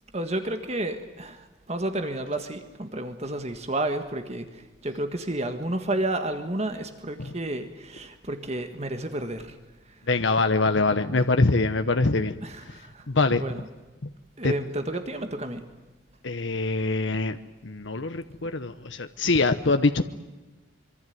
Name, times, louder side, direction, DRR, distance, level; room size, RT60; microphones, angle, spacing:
voice 1, 0.1-9.5 12.4-13.6 14.4-15.6, right 1 dB, 35° right, 7 dB, 1.7 m, -31 dB
voice 2, 10.1-12.4 12.6-12.8 13.1-13.4 14.0-14.1 14.4-14.5 16.2-17.4 17.6-20.0, left 3 dB, 70° left, 9 dB, 1.0 m, -24 dB
26.0 x 24.0 x 9.4 m, 1.1 s
head